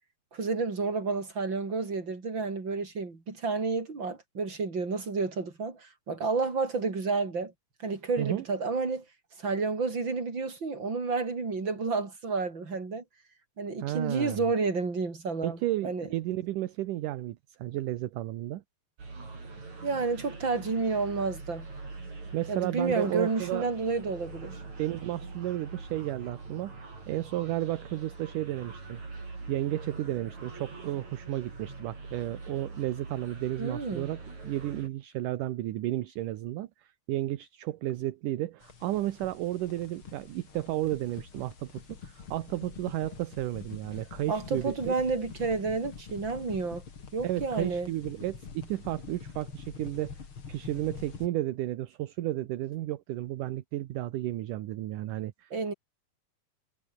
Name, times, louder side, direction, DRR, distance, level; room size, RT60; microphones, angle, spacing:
voice 1, 0.3-7.5 7.8-9.0 9.4-13.0 13.6-16.1 19.8-21.7 22.5-24.6 33.6-34.1 44.3-46.8 47.1-47.9 55.5-55.7, right 4 dB, 30° right, 5.1 m, -30 dB
voice 2, 13.8-14.5 15.4-18.6 22.3-23.7 24.8-26.7 27.1-29.0 29.5-44.9 47.2-50.1 50.5-55.5, right 15 dB, 70° right, 2.5 m, -33 dB
sound 1, 19.0-34.9, right 3 dB, 55° right, 8.7 m, -43 dB
sound 2, 38.6-51.3, left 5 dB, 40° left, 3.3 m, -46 dB
omnidirectional pair, 4.0 m